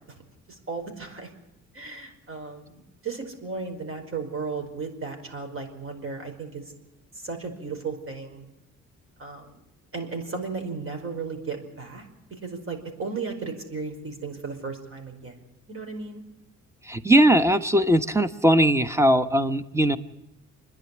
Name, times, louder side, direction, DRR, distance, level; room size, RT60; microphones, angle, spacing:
voice 1, 0.5-1.3 1.7-6.6 7.2-8.5 9.2-9.5 9.9-12.0 12.4-15.3 15.7-16.2, right 4 dB, 45° right, 5 dB, 5.2 m, -35 dB
voice 2, 16.8-20.0, right 1 dB, 10° right, 12 dB, 1.2 m, -20 dB
27.0 x 10.5 x 9.9 m, 0.94 s
cardioid pair, 90°, 30 cm